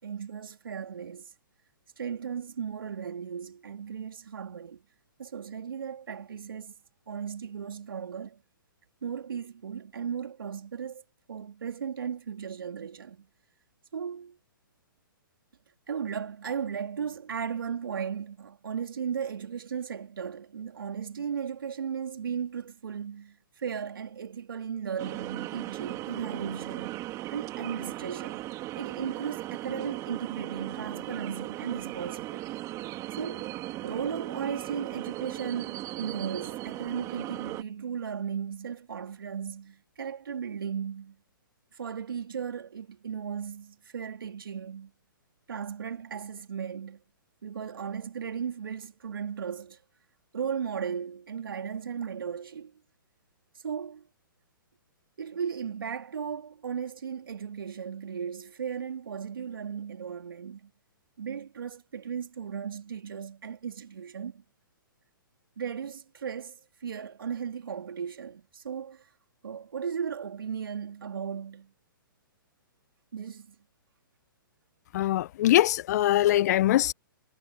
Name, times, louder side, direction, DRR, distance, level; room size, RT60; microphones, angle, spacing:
voice 1, 0.0-1.3 2.0-4.8 5.2-6.7 7.1-8.4 9.0-11.0 11.3-13.3 13.9-14.4 15.9-27.0 27.3-28.4 28.8-32.6 33.2-33.5 33.8-41.2 41.7-44.9 45.5-47.0 47.4-49.8 50.3-52.7 53.6-54.1 55.2-60.7 61.2-64.4 65.6-69.0 69.4-71.7 73.1-73.5, right 7 dB, 75° right, 3.2 m, -36 dB
sound 1, 25.0-37.6, right 16 dB, 30° right, 3.0 m, -37 dB
voice 2, 74.9-76.9, left 14 dB, 50° left, 0.8 m, -22 dB
hypercardioid pair, 130°, 12 cm